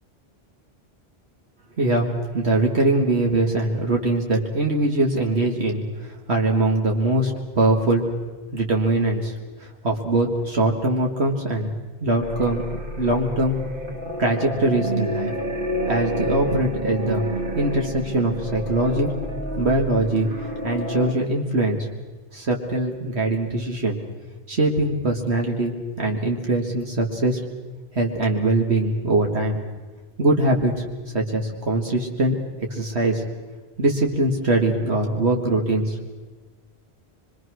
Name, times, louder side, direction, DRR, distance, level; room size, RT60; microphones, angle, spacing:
voice 1, 1.8-8.1 8.5-9.3 9.6-11.7 12.0-13.6 14.2-15.3 15.9-17.2 17.6-19.1 19.6-20.3 20.6-21.9 22.3-24.0 24.5-27.4 28.0-29.6 30.2-30.8 31.1-32.4 32.7-33.2 33.8-36.0, right 2 dB, 80° right, 1 dB, 2.3 m, -22 dB
sound 1, 12.2-21.1, equal, 55° right, 2.5 m, -29 dB
25.0 x 23.0 x 6.4 m, 1.3 s
omnidirectional pair, 1.1 m